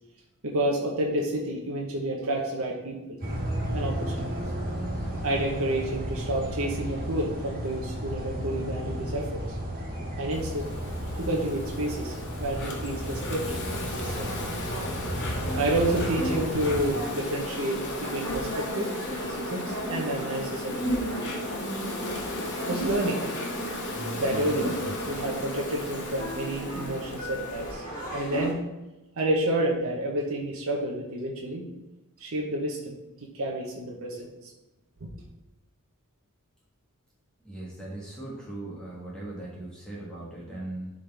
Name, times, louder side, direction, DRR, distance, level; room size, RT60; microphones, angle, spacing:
voice 1, 0.4-3.2 3.7-4.4 5.2-9.6 10.2-10.7 11.2-14.3 15.5-21.4 22.7-23.2 24.2-24.8 25.0-27.8 28.1-28.6 29.2-31.7 32.2-33.0 33.2-34.5, right 1 dB, 65° right, -1 dB, 1.0 m, -30 dB
sound 1, 3.2-16.9, equal, 40° right, 2.1 m, -33 dB
Insect, 10.3-27.7, left 1 dB, 55° left, 1.5 m, -35 dB
sound 2, 13.9-28.5, equal, 40° left, 2.1 m, -37 dB
voice 2, 37.4-40.9, right 2 dB, 5° left, -7 dB, 1.5 m, -39 dB
11.5 x 4.0 x 3.4 m, 1.0 s
head